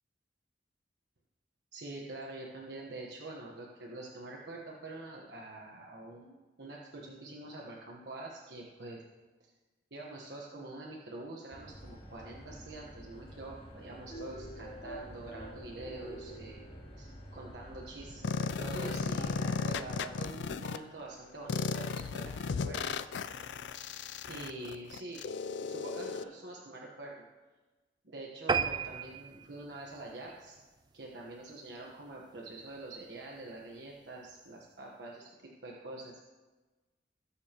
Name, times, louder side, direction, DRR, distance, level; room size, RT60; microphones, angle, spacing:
voice 1, 1.7-9.0 9.9-16.6 17.0-22.9 24.2-25.3 25.6-27.2 28.0-30.6 30.9-35.3 35.6-36.2, right 2 dB, 70° right, -2 dB, 1.3 m, -46 dB
sound 1, 11.5-20.1, equal, 35° left, 2.8 m, -47 dB
sound 2, 18.2-20.8 21.5-26.2, left 5 dB, 80° left, 0.4 m, -35 dB
sound 3, 28.5-31.2 31.7-31.9 32.3-32.4 32.7-32.8 33.1-33.2, right 6 dB, 25° right, 0.3 m, -34 dB
20.0 x 7.0 x 3.0 m, 1.3 s
head